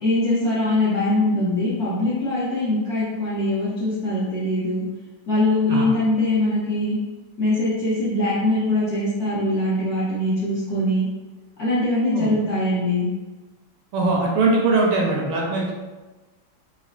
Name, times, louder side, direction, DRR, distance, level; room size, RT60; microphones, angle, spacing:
voice 1, 0.0-4.9 5.3-7.0 7.4-11.1 11.6-13.1, left 1 dB, 65° left, -9 dB, 1.0 m, -22 dB
voice 2, 13.9-15.7, right 3 dB, 75° right, -2 dB, 1.4 m, -21 dB
4.1 x 2.4 x 2.5 m, 1.2 s
omnidirectional pair, 2.4 m